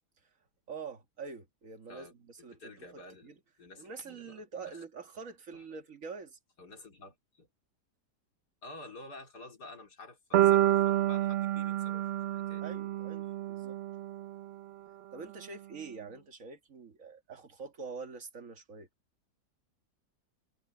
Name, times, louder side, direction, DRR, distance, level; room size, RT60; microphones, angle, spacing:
voice 1, 0.7-3.4 3.8-6.4 12.6-13.8 15.1-18.9, right 5 dB, 55° right, 2.1 m, -45 dB
voice 2, 2.6-4.3 4.7-4.8 5.5-5.6 6.6-7.5 8.6-12.0 12.3-12.7, left 2 dB, 80° left, 4.4 m, -50 dB
sound 1, 10.3-14.4, right 13 dB, 85° right, 0.5 m, -28 dB
omnidirectional pair, 1.7 m